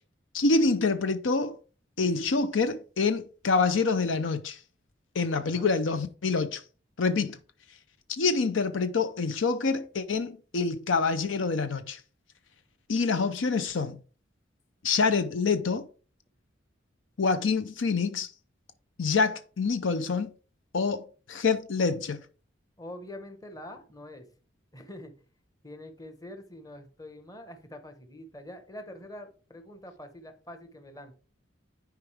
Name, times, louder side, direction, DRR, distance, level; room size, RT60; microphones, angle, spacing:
voice 1, 0.3-1.6 2.0-4.6 5.1-6.6 7.0-7.4 8.1-12.0 12.9-14.0 14.8-15.8 17.2-18.3 19.0-20.3 20.7-22.2, left 4 dB, 75° left, 0.6 m, -26 dB
voice 2, 5.4-5.8 22.8-24.2 24.7-25.1 25.6-31.1, left 1 dB, 20° left, 1.1 m, -45 dB
10.5 x 4.7 x 3.4 m
head